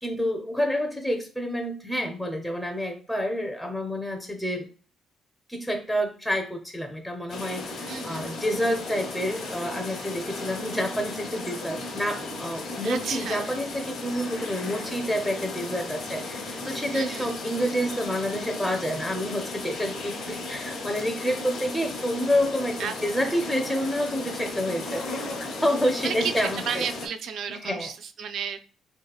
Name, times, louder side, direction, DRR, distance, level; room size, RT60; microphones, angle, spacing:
voice 1, 0.0-4.7 5.5-26.8 27.5-27.9, equal, 5° left, 3 dB, 0.4 m, -28 dB
sound 1, 7.3-27.1, left 2 dB, 85° left, 0.7 m, -35 dB
voice 2, 7.9-8.3 12.8-13.5 16.8-17.3 22.8-23.2 26.0-28.6, right 7 dB, 70° right, 9 dB, 0.3 m, -33 dB
2.8 x 2.7 x 2.3 m, 0.39 s
cardioid pair, 90°, 0 cm